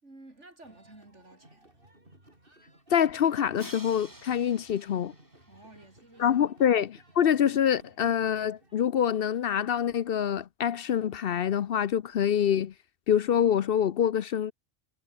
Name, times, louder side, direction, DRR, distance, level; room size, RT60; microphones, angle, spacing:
voice 1, 0.0-1.9 5.5-6.4, right 2 dB, 90° right, 5.6 m, -52 dB
sound 1, 0.6-8.8, right 1 dB, 50° right, 7.4 m, -59 dB
voice 2, 2.9-5.1 6.2-12.7 13.1-14.5, left 9 dB, 60° left, 0.8 m, -25 dB
Crash cymbal, 3.6-6.5, right 1 dB, 15° right, 3.1 m, -49 dB
omnidirectional pair, 1.2 m